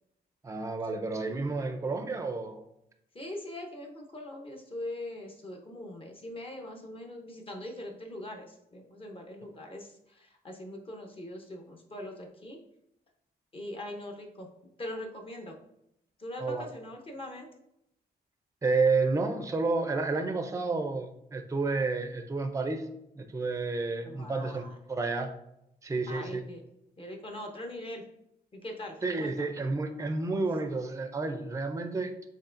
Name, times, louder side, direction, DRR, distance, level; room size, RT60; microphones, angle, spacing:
voice 1, 0.4-2.6 16.4-16.7 18.6-22.8 23.2-25.3 25.8-26.4 29.0-32.1, right 3 dB, 20° right, 7 dB, 0.5 m, -30 dB
voice 2, 3.1-12.6 13.5-14.5 14.8-15.6 16.2-17.5 24.0-24.7 26.1-26.6 27.0-28.0 28.5-29.5, left 1 dB, 30° left, 2 dB, 0.8 m, -42 dB
5.4 x 3.7 x 2.5 m, 0.82 s
cardioid pair, 105°, 17 cm